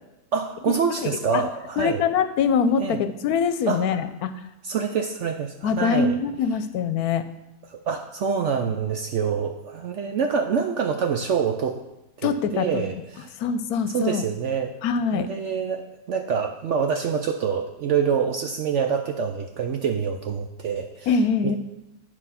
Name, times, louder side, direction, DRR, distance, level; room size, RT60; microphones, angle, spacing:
voice 1, 0.3-2.0 2.8-3.0 3.7-3.8 4.6-6.1 7.7-11.8 12.2-13.3 13.9-14.7 15.1-21.1 21.4-21.6, right 6 dB, 65° right, 5 dB, 0.8 m, -26 dB
voice 2, 1.0-1.4 1.8-4.4 5.6-7.2 12.2-12.8 13.4-14.2 14.8-15.3 21.1-21.6, left 6 dB, 80° left, 11 dB, 1.1 m, -23 dB
9.9 x 4.7 x 5.6 m, 0.94 s
omnidirectional pair, 1.6 m